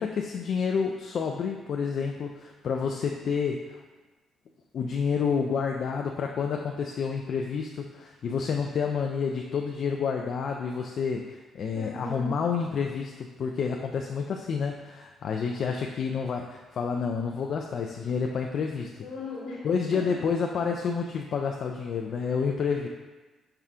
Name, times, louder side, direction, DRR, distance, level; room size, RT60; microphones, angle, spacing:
voice 1, 0.0-3.8 4.7-18.9 19.6-22.9, left 6 dB, 60° left, 2 dB, 0.3 m, -29 dB
voice 2, 11.7-12.4 19.0-19.7 19.9-20.2 22.1-22.3 22.8-22.9, left 3 dB, 80° left, -4 dB, 1.2 m, -38 dB
5.5 x 3.3 x 2.4 m, 1.2 s
cardioid pair, 90°, 0 cm